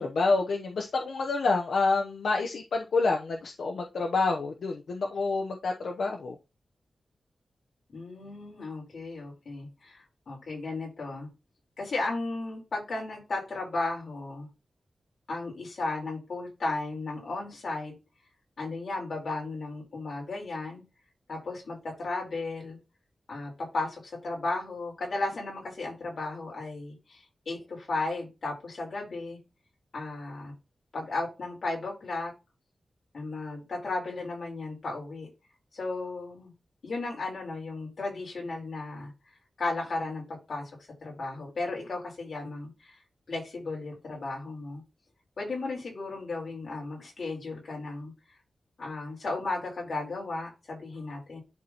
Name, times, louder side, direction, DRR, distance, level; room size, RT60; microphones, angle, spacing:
voice 1, 0.0-6.4, left 3 dB, 85° left, 2 dB, 0.8 m, -28 dB
voice 2, 7.9-11.3 11.8-14.5 15.3-17.9 18.6-20.8 21.3-22.8 23.3-29.4 29.9-30.5 30.9-32.3 33.1-35.3 35.7-36.5 36.8-39.1 39.6-40.7 41.0-43.0 43.3-44.8 45.4-48.1 48.8-51.4, left 3 dB, 65° left, -2 dB, 3.8 m, -35 dB
11.0 x 4.0 x 2.9 m, 0.27 s
wide cardioid pair, 110°, 0 cm